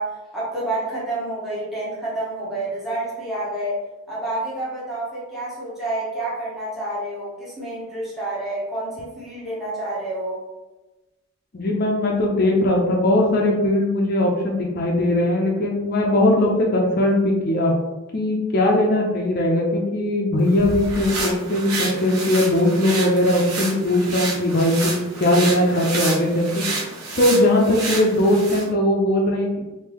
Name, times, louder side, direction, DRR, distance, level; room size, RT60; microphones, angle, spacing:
voice 1, 0.0-3.8 4.1-10.4, right 1 dB, ahead, -9 dB, 0.9 m, -29 dB
voice 2, 11.5-17.7 18.1-26.6 27.2-29.6, left 1 dB, 45° left, 0 dB, 0.5 m, -19 dB
sound 1, 20.5-28.7, right 3 dB, 85° right, 0.9 m, -30 dB
3.6 x 2.6 x 3.0 m, 1.1 s
head